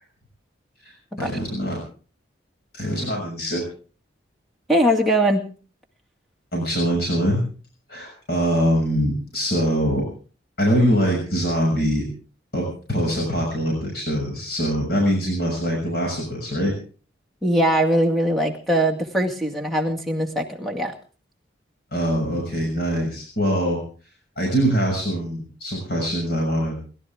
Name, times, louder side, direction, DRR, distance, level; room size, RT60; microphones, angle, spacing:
voice 1, 1.2-1.8 2.7-3.6 6.5-7.4 7.9-10.0 10.6-12.0 12.5-16.7 21.9-23.8 24.4-26.8, equal, 55° left, 0 dB, 6.5 m, -23 dB
voice 2, 4.7-5.4 17.4-20.9, equal, ahead, 2 dB, 2.0 m, -21 dB
29.5 x 12.5 x 3.6 m, 0.40 s
head